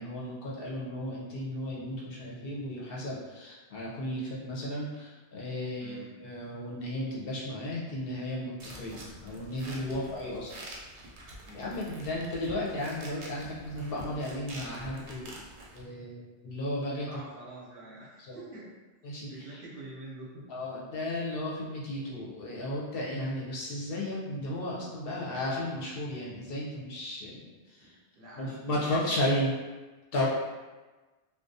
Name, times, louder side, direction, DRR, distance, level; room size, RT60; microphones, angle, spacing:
voice 1, 0.0-10.6 11.5-15.4 15.7-17.2 18.2-18.4 19.0-19.6 20.5-28.0 28.4-29.5 30.1-30.3, left 1 dB, 65° left, -5 dB, 0.7 m, -34 dB
voice 2, 5.8-6.1 9.9-10.3 11.4-11.7 17.1-18.7 19.3-20.5 27.8-29.2, right 2 dB, 60° right, -5 dB, 0.7 m, -47 dB
sound 1, 8.6-15.8, right 1 dB, 85° right, 0.9 m, -46 dB
2.3 x 2.1 x 2.6 m, 1.2 s
omnidirectional pair, 1.1 m